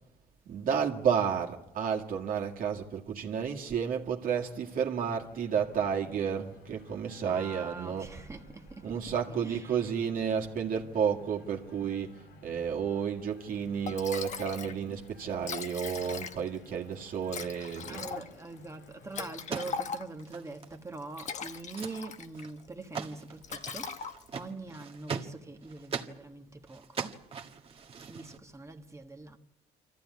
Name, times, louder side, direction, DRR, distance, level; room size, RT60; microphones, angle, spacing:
voice 1, 0.5-8.1 8.8-12.1 12.4-18.0, right 7 dB, 55° right, 2.2 m, -31 dB
sound 1, 4.3-19.4, left 2 dB, 85° left, 5.1 m, -56 dB
voice 2, 7.2-9.9 17.9-24.0 24.3-27.2 28.1-29.4, right 3 dB, 15° right, 1.5 m, -43 dB
Liquid, 13.5-13.6 13.9-14.8 15.1-15.2 15.3-16.6 17.3-20.3 21.0-22.5 22.8-23.1 23.4-24.5, left 6 dB, 45° left, 1.2 m, -39 dB
sound 2, 19.3-20.9 21.1-21.2 21.5-22.0 22.3-22.7 23.0-26.2 26.7-28.4, right 6 dB, 35° right, 1.7 m, -40 dB
25.5 x 14.5 x 9.6 m
cardioid pair, 110°, 17 cm